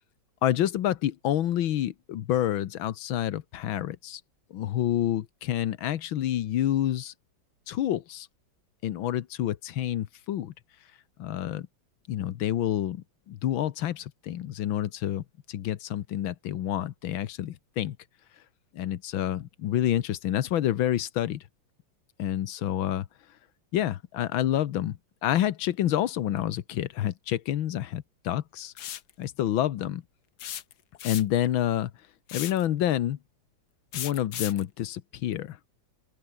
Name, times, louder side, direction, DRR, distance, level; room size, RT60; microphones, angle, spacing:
voice 1, 0.4-4.2 4.5-7.1 7.7-8.3 8.8-10.5 11.2-11.7 12.1-18.0 18.7-21.4 22.2-23.1 23.7-28.7 29.2-30.0 31.0-31.9 32.3-33.2 33.9-35.6, left 12 dB, 85° left, 1.8 m, -28 dB
sound 1, 28.8-29.1 30.4-31.5 32.3-32.7 33.9-34.6, left 11 dB, 60° left, 1.4 m, -36 dB
open air
omnidirectional pair, 2.1 m